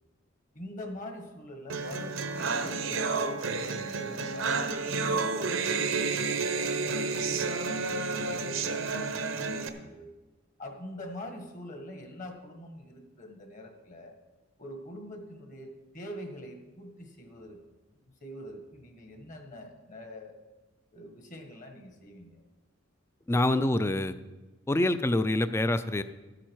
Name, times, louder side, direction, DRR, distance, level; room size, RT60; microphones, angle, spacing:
voice 1, 0.5-7.7 8.0-10.1 10.6-14.2 14.6-17.6 18.2-20.4 20.9-22.4, equal, 40° left, 4 dB, 1.6 m, -44 dB
sound 1, 1.7-9.7, right 4 dB, 85° right, 0.9 m, -30 dB
voice 2, 23.3-24.1 24.7-26.0, left 1 dB, 15° left, 12 dB, 0.4 m, -26 dB
13.0 x 8.9 x 4.7 m, 1.1 s
head